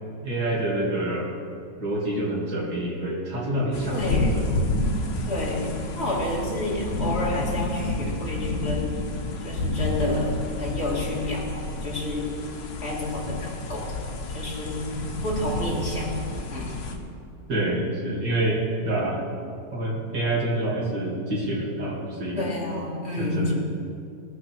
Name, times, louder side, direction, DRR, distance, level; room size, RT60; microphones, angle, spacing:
voice 1, 0.2-1.3 1.8-4.6 17.5-19.2 19.7-22.5 23.2-23.5, right 1 dB, 60° right, -5 dB, 3.2 m, -27 dB
sound 1, 3.7-17.0, left 2 dB, 65° left, 1.7 m, -30 dB
voice 2, 3.9-4.6 5.2-9.1 9.4-12.4 12.8-14.0 14.3-16.2 16.5-17.0 22.3-23.5, left 2 dB, 30° left, -4 dB, 2.6 m, -30 dB
19.0 x 6.7 x 6.1 m, 2.6 s
omnidirectional pair, 2.1 m